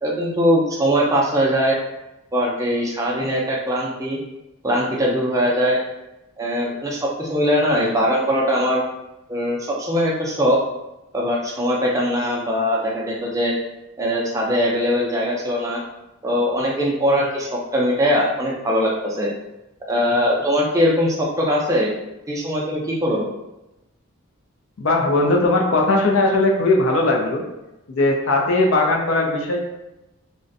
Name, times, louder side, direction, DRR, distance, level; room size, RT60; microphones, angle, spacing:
voice 1, 0.0-1.8 2.3-4.2 4.6-5.8 6.4-8.8 9.3-10.6 11.1-13.5 14.0-15.8 16.2-19.3 19.9-21.9 22.3-23.3, equal, 15° right, -3 dB, 0.3 m, -21 dB
voice 2, 24.8-27.4 27.9-29.6, left 2 dB, 70° left, 1 dB, 0.4 m, -18 dB
2.4 x 2.1 x 2.5 m, 0.94 s
head